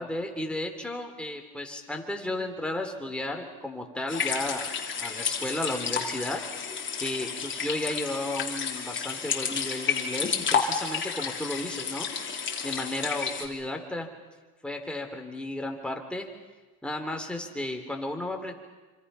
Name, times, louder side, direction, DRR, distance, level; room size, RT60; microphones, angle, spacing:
voice 1, 0.0-4.7 5.0-6.4 7.0-12.1 12.6-14.1 14.6-16.3 16.8-18.5, left 1 dB, ahead, 2 dB, 3.3 m, -33 dB
sound 1, 4.1-13.5, left 6 dB, 25° left, 3.5 m, -31 dB
27.0 x 26.0 x 5.7 m, 1.3 s
cardioid pair, 125°, 44 cm